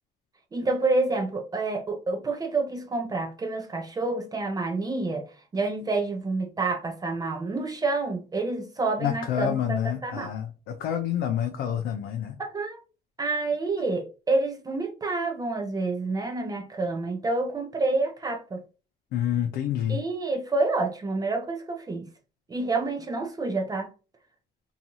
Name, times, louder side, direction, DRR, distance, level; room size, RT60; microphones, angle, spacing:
voice 1, 0.5-5.2 5.5-10.3 12.4-12.8 13.2-18.6 19.9-22.1 22.5-23.9, right 3 dB, 20° right, 0.4 m, -28 dB
voice 2, 9.0-12.4 19.1-20.0, left 10 dB, 75° left, 0.4 m, -28 dB
2.6 x 2.3 x 2.8 m
cardioid pair, 110°, 17 cm